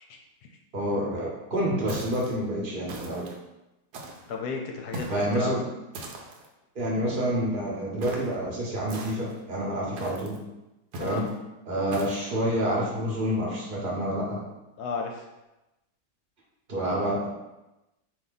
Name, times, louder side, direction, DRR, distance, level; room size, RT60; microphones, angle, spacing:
voice 1, 0.7-3.3 5.1-5.6 6.7-10.4 10.9-11.3 11.7-14.4 16.7-17.3, equal, 35° right, -4 dB, 0.9 m, -28 dB
sound 1, 1.9-2.4 2.9-3.4 3.9-4.3 4.9-5.3 5.9-6.5 8.0-8.4 8.9-9.4 10.0-10.4 10.9-11.3 11.9-12.3, right 1 dB, 70° right, 1.1 m, -39 dB
voice 2, 4.3-5.6 11.0-11.2 14.8-15.3, left 5 dB, 70° left, 1 dB, 1.1 m, -33 dB
4.4 x 2.7 x 3.9 m, 0.98 s
omnidirectional pair, 1.9 m